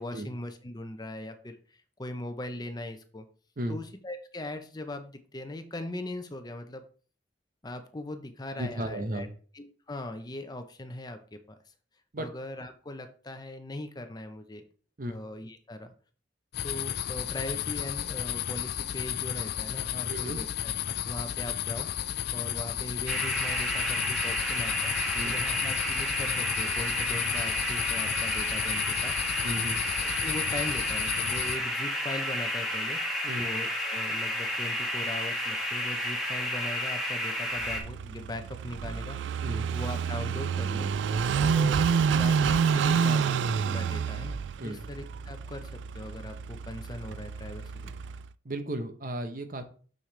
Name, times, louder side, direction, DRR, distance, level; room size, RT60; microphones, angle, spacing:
voice 1, 0.0-3.3 3.7-6.8 7.6-9.3 9.5-11.4 12.2-14.6 15.1-15.9 16.6-21.9 22.3-24.9 25.2-29.2 30.2-33.0 33.4-39.2 39.7-40.9 41.3-48.0, left 1 dB, 25° left, 7 dB, 0.7 m, -40 dB
voice 2, 8.6-9.3 12.1-12.3 15.0-15.1 20.1-20.4 25.1-25.4 29.4-29.8 33.2-33.5 39.4-39.7 44.6-44.8 48.4-49.7, right 1 dB, 50° right, 8 dB, 0.9 m, -34 dB
sound 1, 16.5-31.6, left 11 dB, 60° left, 0.4 m, -33 dB
sound 2, 23.1-37.8, left 1 dB, ahead, 1.8 m, -31 dB
Car passing by / Idling, 37.6-48.3, right 6 dB, 90° right, 0.3 m, -28 dB
6.5 x 6.2 x 3.3 m, 0.41 s
head